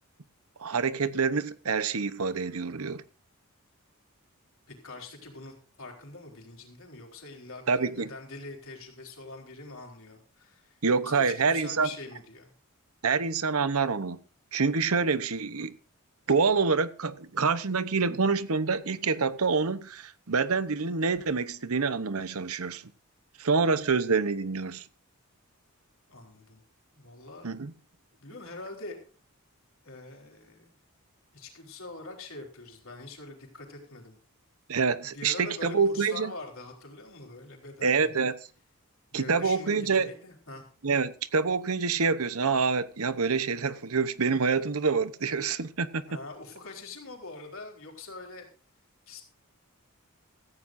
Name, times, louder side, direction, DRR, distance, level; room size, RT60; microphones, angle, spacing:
voice 1, 0.6-3.0 7.7-8.1 10.8-11.9 13.0-14.2 14.5-15.7 16.3-22.8 23.4-24.8 27.4-27.7 34.7-36.3 37.8-38.3 39.1-40.1 40.8-46.0, right 5 dB, 75° right, 0.9 m, -26 dB
voice 2, 4.7-12.5 26.1-26.6 26.9-27.5 28.2-29.0 29.8-30.8 31.3-34.2 35.1-38.2 39.1-40.6 46.1-48.5 49.1-49.2, left 3 dB, 65° left, 4.0 m, -44 dB
17.0 x 14.5 x 2.6 m
head